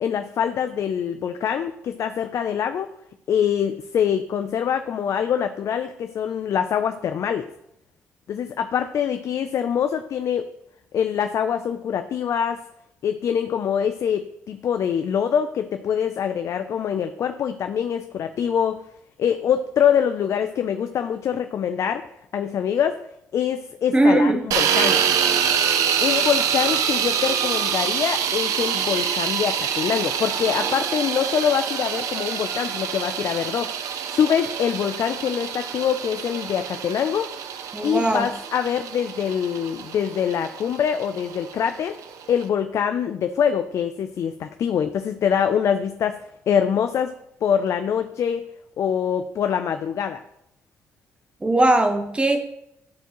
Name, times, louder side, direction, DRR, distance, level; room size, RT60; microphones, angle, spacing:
voice 1, 0.0-2.9 3.3-7.5 8.3-10.5 10.9-12.6 13.0-18.8 19.2-22.0 22.3-23.0 23.3-25.0 26.0-33.7 34.1-37.3 37.8-42.0 42.3-46.2 46.5-47.1 47.4-48.5 48.8-50.2, left 8 dB, 65° left, 8 dB, 0.4 m, -24 dB
voice 2, 23.9-24.5 37.7-38.3 51.4-52.4, right 2 dB, 20° right, 5 dB, 1.2 m, -19 dB
sound 1, 24.5-42.4, right 8 dB, 80° right, 0.6 m, -26 dB
11.5 x 4.5 x 3.0 m, 0.79 s
cardioid pair, 75°, 5 cm